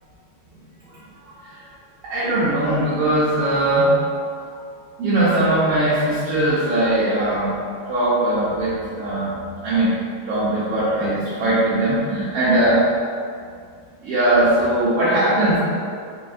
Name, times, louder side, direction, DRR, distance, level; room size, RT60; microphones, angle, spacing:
voice 1, 2.0-4.0 4.5-4.6 5.0-7.6 7.9-9.3 9.6-9.9 10.3-12.8 14.0-15.6, right 1 dB, 75° right, -11 dB, 1.4 m, -20 dB
4.9 x 2.5 x 2.3 m, 2.2 s
omnidirectional pair, 3.3 m